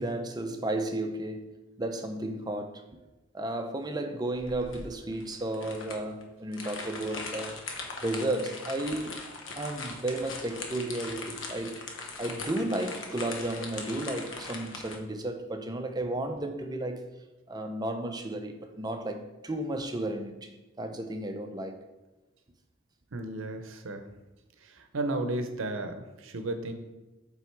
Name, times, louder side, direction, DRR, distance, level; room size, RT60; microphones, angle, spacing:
voice 1, 0.0-2.8 3.3-7.6 8.0-9.2 9.6-17.1 17.5-20.5 20.8-21.8, right 1 dB, 20° right, 0.6 m, -33 dB
sound 1, 4.4-15.0, left 3 dB, 75° left, 1.0 m, -40 dB
voice 2, 23.1-24.1 24.6-26.7, right 2 dB, 85° right, 0.7 m, -34 dB
7.5 x 3.5 x 4.6 m
head